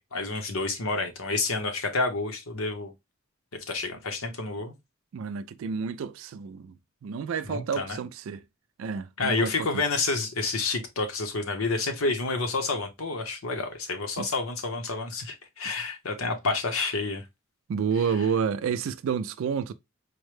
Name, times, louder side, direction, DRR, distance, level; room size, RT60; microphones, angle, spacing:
voice 1, 0.1-2.9 3.7-4.7 7.5-8.0 9.2-17.3, left 3 dB, 85° left, 0.9 m, -29 dB
voice 2, 5.1-6.7 7.0-8.4 8.8-9.7 14.2-14.3 17.7-19.7, right 6 dB, 75° right, 0.3 m, -29 dB
4.6 x 2.1 x 3.1 m
head